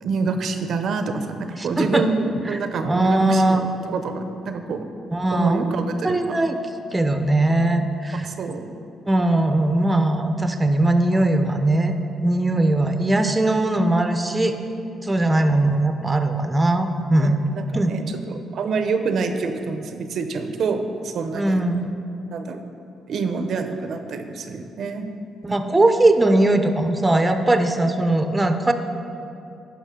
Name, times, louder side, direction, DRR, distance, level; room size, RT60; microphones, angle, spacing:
voice 1, 0.0-4.9 5.3-6.4 8.1-8.7 17.2-21.6 22.3-22.6 23.1-25.1 25.5-25.7, right 4 dB, 65° right, 7 dB, 0.5 m, -27 dB
voice 2, 1.6-2.0 2.5-3.6 5.1-5.8 6.0-6.6 6.9-8.3 9.1-11.9 12.2-14.5 15.0-17.3 17.7-18.0 21.3-21.9 25.5-28.7, right 2 dB, 15° right, 7 dB, 0.5 m, -20 dB
9.9 x 5.8 x 3.6 m, 2.8 s
cardioid pair, 90°, 0 cm